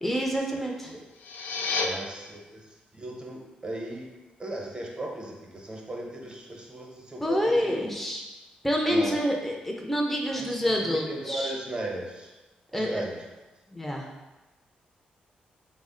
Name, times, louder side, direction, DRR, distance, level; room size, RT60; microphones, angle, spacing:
voice 1, 0.0-0.9 7.2-8.3 8.6-11.6 12.7-13.0 13.7-14.1, equal, 5° left, -1 dB, 0.5 m, -27 dB
sound 1, 1.0-1.9, left 4 dB, 85° left, 0.3 m, -30 dB
voice 2, 1.8-4.1 4.4-7.7 8.9-9.2 10.3-12.3 12.7-13.2, right 1 dB, 30° right, -1 dB, 0.8 m, -37 dB
3.4 x 2.1 x 3.7 m, 1.1 s
cardioid pair, 65°, 3 cm